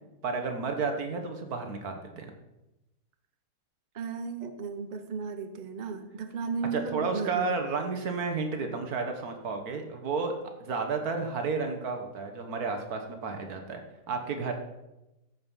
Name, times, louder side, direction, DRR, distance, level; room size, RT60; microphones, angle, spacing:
voice 1, 0.2-2.3 6.7-10.3 10.6-13.8 14.1-14.5, right 4 dB, 65° right, 5 dB, 1.7 m, -32 dB
voice 2, 3.9-7.5, right 5 dB, 45° right, 9 dB, 0.5 m, -35 dB
14.5 x 5.3 x 5.6 m, 0.96 s
omnidirectional pair, 1.7 m